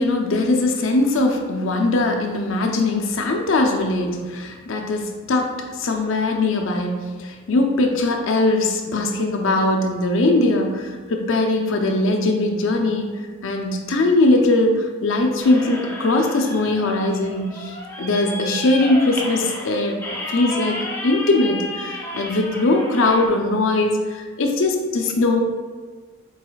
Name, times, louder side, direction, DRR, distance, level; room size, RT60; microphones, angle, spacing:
voice 1, 0.0-13.1 13.4-17.7 18.0-25.4, left 2 dB, 65° left, 3 dB, 0.5 m, -20 dB
sound 1, 15.4-23.3, left 1 dB, 10° left, 0.4 m, -32 dB
4.8 x 4.1 x 2.3 m, 1.4 s
head